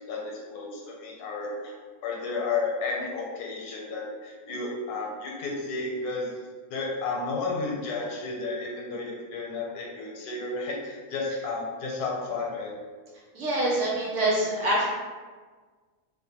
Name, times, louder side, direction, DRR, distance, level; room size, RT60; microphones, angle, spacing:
voice 1, 0.0-1.7 2.0-6.4 6.7-12.7, left 3 dB, 80° left, -2 dB, 1.1 m, -32 dB
voice 2, 13.3-14.9, right 1 dB, 60° right, -5 dB, 0.9 m, -25 dB
2.6 x 2.1 x 2.8 m, 1.5 s
omnidirectional pair, 1.7 m